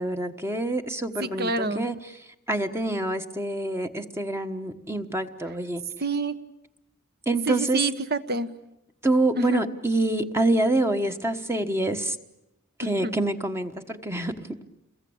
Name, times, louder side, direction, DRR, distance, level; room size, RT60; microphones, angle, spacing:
voice 1, 0.0-2.1 2.5-5.8 7.3-7.8 9.0-12.2 12.8-14.6, right 2 dB, 10° right, 6 dB, 1.2 m, -26 dB
voice 2, 1.2-1.8 6.0-6.4 7.5-8.5 9.4-9.6 12.8-13.1, right 3 dB, 50° right, 12 dB, 1.3 m, -28 dB
29.0 x 22.0 x 8.7 m, 0.89 s
head